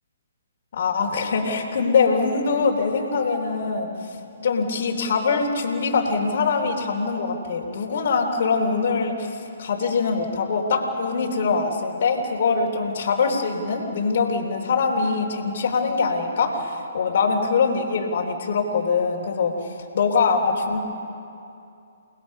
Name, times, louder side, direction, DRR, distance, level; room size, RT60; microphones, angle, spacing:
voice 1, 0.7-3.9 4.4-19.5 19.9-20.8, left 4 dB, 60° left, -1 dB, 3.6 m, -23 dB
29.5 x 20.0 x 5.5 m, 2.6 s
hypercardioid pair, 140°, 0 cm